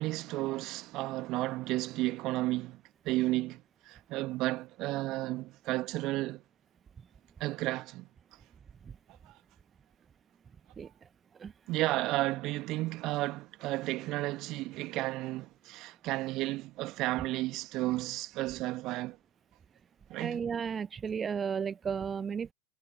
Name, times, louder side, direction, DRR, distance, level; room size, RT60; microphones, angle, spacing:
voice 1, 0.0-6.4 7.4-8.1 9.2-9.4 11.7-19.2 20.1-20.4, right 18 dB, 40° right, 1.7 m, -33 dB
voice 2, 10.8-11.5 20.1-22.5, right 6 dB, 20° right, 1.3 m, -35 dB
figure-of-eight pair, 90°, 0 cm